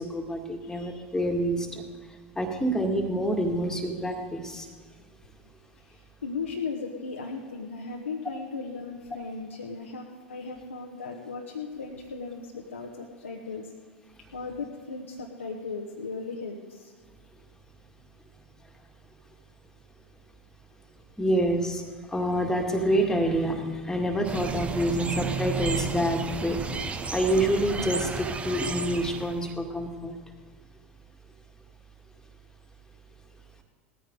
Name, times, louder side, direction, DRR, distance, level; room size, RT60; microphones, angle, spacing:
voice 1, 0.0-1.8 2.4-4.7 21.2-21.8 22.1-30.1, right 1 dB, 5° left, 3 dB, 2.0 m, -27 dB
voice 2, 0.6-1.0 5.8-13.7 14.3-16.9, left 4 dB, 80° left, -1 dB, 1.1 m, -37 dB
sound 1, 24.2-29.5, right 5 dB, 15° right, 0.9 m, -33 dB
18.5 x 14.0 x 3.8 m, 1.5 s
figure-of-eight pair, 80°, 7 cm